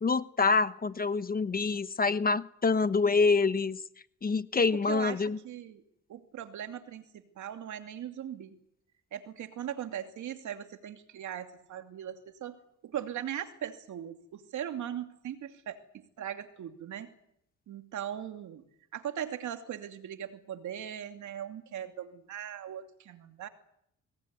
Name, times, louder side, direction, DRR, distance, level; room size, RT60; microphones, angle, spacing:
voice 1, 0.0-3.8 4.2-5.4, left 4 dB, 30° left, 14 dB, 1.1 m, -26 dB
voice 2, 4.9-5.8 6.1-8.6 9.1-12.6 12.8-17.1 17.7-18.6 18.9-23.5, right 10 dB, 75° right, 6 dB, 2.7 m, -39 dB
22.0 x 19.0 x 9.7 m, 0.72 s
cardioid pair, 90°, 30 cm